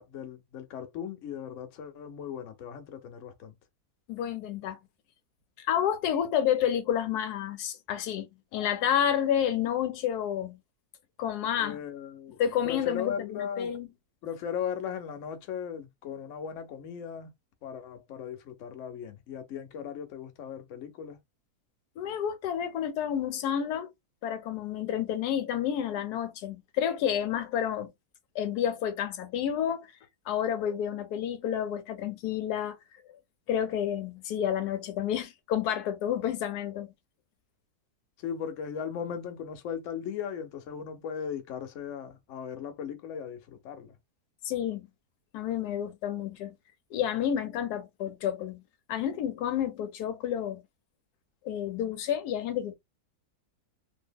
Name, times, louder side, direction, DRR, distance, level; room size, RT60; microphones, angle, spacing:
voice 1, 0.0-3.5 11.6-12.4 12.6-13.7 14.2-17.3 17.6-21.2 38.2-44.0, left 8 dB, 60° left, 0.9 m, -37 dB
voice 2, 4.1-4.8 5.6-10.6 11.2-11.8 12.4-13.9 22.0-23.9 24.2-27.9 28.3-29.9 30.3-32.8 33.5-36.9 44.4-44.9 45.3-46.5 46.9-48.6 48.9-50.6 51.4-52.7, left 9 dB, 85° left, 1.1 m, -30 dB
2.7 x 2.7 x 2.2 m
omnidirectional pair, 1.6 m